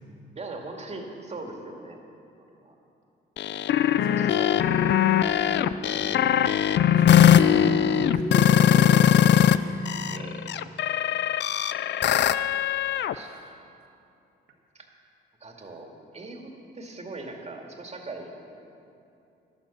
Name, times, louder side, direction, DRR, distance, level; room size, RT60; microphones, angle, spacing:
voice 1, 0.4-2.0 2.4-2.8 4.2-4.6 10.1-10.7 13.1-13.3 14.7-14.9 15.4-18.3, right 2 dB, 35° right, 2 dB, 2.2 m, -40 dB
sound 1, 3.4-9.6 9.9-13.1, left 10 dB, 60° left, 0.5 m, -20 dB
voice 2, 3.9-4.9 5.8-6.4 6.9-9.8 13.1-13.4, right 2 dB, 80° right, 1 dB, 2.0 m, -38 dB
12.0 x 11.5 x 7.1 m, 2.7 s
cardioid pair, 90°, 20 cm